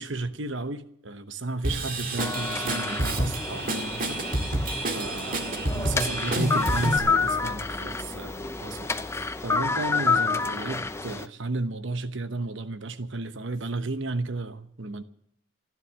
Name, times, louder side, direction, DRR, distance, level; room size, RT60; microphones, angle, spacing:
voice 1, 0.0-4.2 5.0-8.9 9.4-15.0, right 3 dB, 60° right, 11 dB, 1.1 m, -33 dB
Drum kit / Drum, 1.6-7.0, right 1 dB, 40° right, 2.0 m, -29 dB
sound 1, 2.2-11.3, left 4 dB, 15° left, 0.6 m, -29 dB
15.5 x 11.0 x 7.5 m, 0.72 s
head